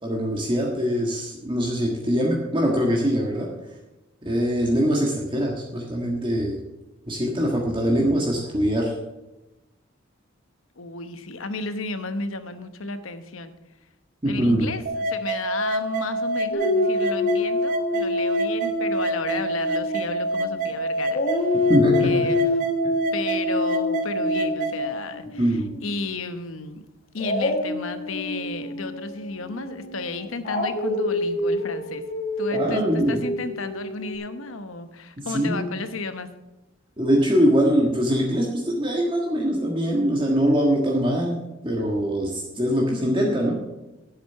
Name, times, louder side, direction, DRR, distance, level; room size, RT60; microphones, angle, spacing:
voice 1, 0.0-3.5 4.2-6.6 7.1-8.9 14.2-14.7 21.7-22.1 25.4-25.7 32.5-33.2 35.2-35.7 37.0-43.6, equal, 25° right, -2 dB, 1.6 m, -23 dB
voice 2, 10.8-13.5 14.3-21.7 22.0-22.5 23.1-26.8 27.1-32.0 32.4-36.3, left 3 dB, 80° left, 10 dB, 1.0 m, -33 dB
sound 1, 14.9-24.9, right 2 dB, 40° right, 1.0 m, -27 dB
Dog, 16.5-20.7 21.1-26.1 27.2-34.2, left 2 dB, 45° left, 1.7 m, -27 dB
11.0 x 7.8 x 5.7 m, 1.0 s
head